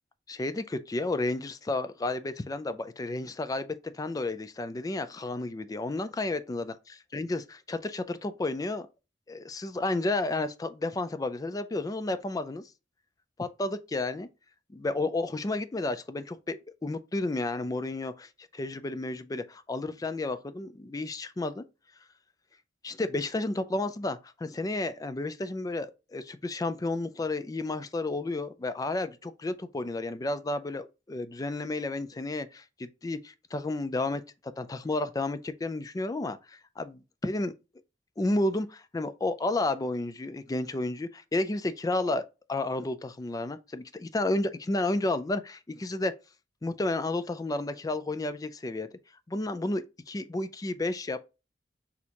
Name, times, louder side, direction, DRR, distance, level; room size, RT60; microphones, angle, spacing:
voice 1, 0.3-6.7 7.1-8.9 9.3-12.6 13.4-14.3 14.7-21.6 22.8-34.2 34.6-37.5 38.2-42.2 42.5-46.1 46.6-48.9 49.3-51.2, left 2 dB, 20° left, 0.3 m, -32 dB
6.2 x 2.8 x 2.8 m
head